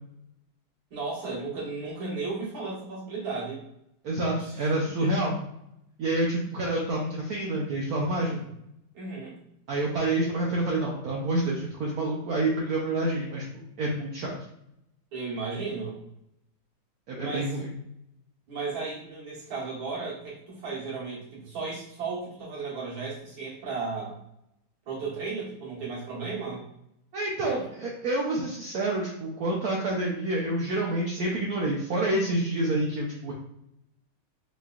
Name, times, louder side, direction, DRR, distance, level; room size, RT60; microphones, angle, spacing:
voice 1, 0.9-3.6 4.3-4.7 5.0-5.2 8.2-8.5 8.9-9.4 15.1-16.0 17.2-17.5 18.5-24.2 24.9-26.6 27.4-27.7, right 4 dB, 70° right, -6 dB, 2.1 m, -35 dB
voice 2, 4.0-5.4 6.0-8.4 9.7-14.4 17.1-17.7 27.1-33.3, right 2 dB, 90° right, -2 dB, 0.8 m, -28 dB
4.1 x 3.0 x 2.3 m, 0.79 s
omnidirectional pair, 2.3 m